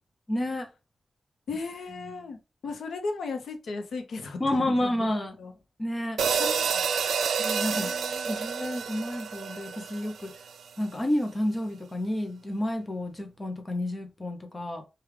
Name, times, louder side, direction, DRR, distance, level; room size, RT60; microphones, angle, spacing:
voice 1, 0.3-0.7 4.4-5.4 5.8-6.2 7.4-7.9 8.3-10.3 10.8-14.9, left 1 dB, 20° left, 0.6 m, -30 dB
voice 2, 1.5-4.9 5.4-5.5 6.4-6.8 7.7-8.4, left 3 dB, 85° left, 0.8 m, -36 dB
sound 1, 6.2-10.6, right 6 dB, 85° right, 0.3 m, -29 dB
4.9 x 2.3 x 3.2 m
wide cardioid pair, 175°, 0 cm